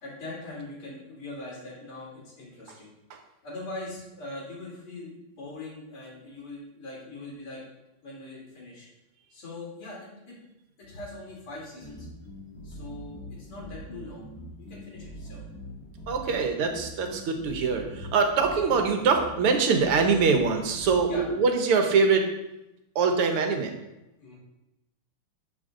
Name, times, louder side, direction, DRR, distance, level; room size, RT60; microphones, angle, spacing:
voice 1, 0.0-2.9 3.4-7.6 8.0-8.9 9.3-10.3 10.8-12.1 12.6-14.3 14.6-15.4 16.0-16.1 21.1-21.3 24.2-24.3, left 2 dB, 85° left, -4 dB, 4.1 m, -41 dB
sound 1, 11.8-21.3, equal, 60° left, 2.6 m, -43 dB
voice 2, 16.1-22.3 23.0-23.7, right 5 dB, 90° right, 4 dB, 2.1 m, -23 dB
12.0 x 7.1 x 3.9 m, 0.92 s
omnidirectional pair, 2.4 m